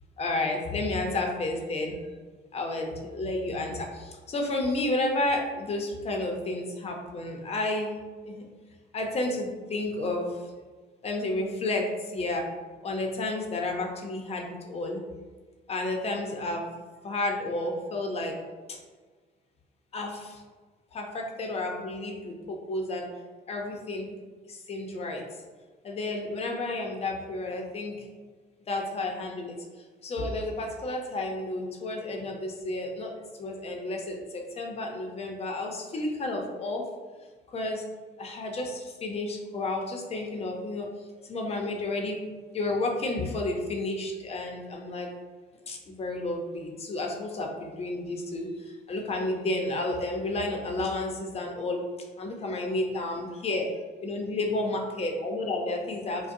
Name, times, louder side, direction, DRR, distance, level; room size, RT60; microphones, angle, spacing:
voice 1, 0.2-1.9 2.5-7.9 8.2-8.5 8.9-10.4 11.0-12.5 12.8-15.0 15.7-16.7 17.0-18.4 18.7-18.8 19.9-20.4 20.9-23.1 23.5-24.1 24.5-25.2 25.8-28.1 28.7-29.6 30.0-36.8 37.5-37.8 38.2-40.9 41.2-42.2 42.5-45.1 45.7-51.8 52.2-53.7 54.0-56.3, left 2 dB, 35° left, 1 dB, 0.7 m, -31 dB
5.0 x 2.2 x 2.6 m, 1.4 s
cardioid pair, 110°, 17 cm